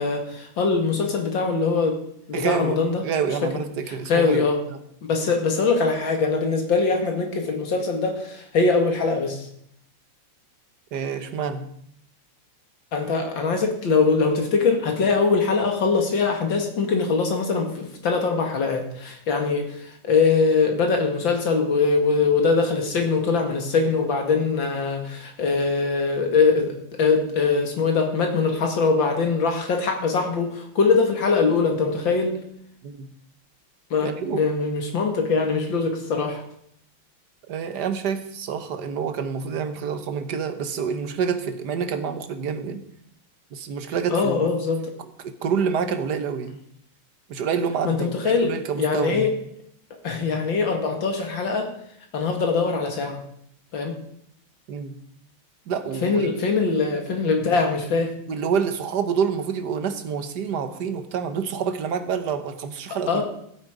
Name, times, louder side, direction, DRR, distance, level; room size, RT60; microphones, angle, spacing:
voice 1, 0.0-2.0 2.3-3.0 3.9-4.6 5.0-9.5 12.9-32.4 33.9-36.4 44.1-44.8 47.8-49.3 50.0-51.7 52.1-53.2 53.7-54.0 56.0-58.1 63.1-63.2, left 4 dB, 65° left, 3 dB, 2.7 m, -22 dB
voice 2, 2.3-4.8 10.9-11.7 32.8-33.1 34.0-34.5 37.5-42.8 43.5-44.5 45.2-46.6 47.3-49.3 54.7-55.0 55.7-56.3 58.3-63.2, right 6 dB, 60° right, 9 dB, 1.6 m, -27 dB
15.0 x 8.6 x 5.0 m, 0.70 s
omnidirectional pair, 2.2 m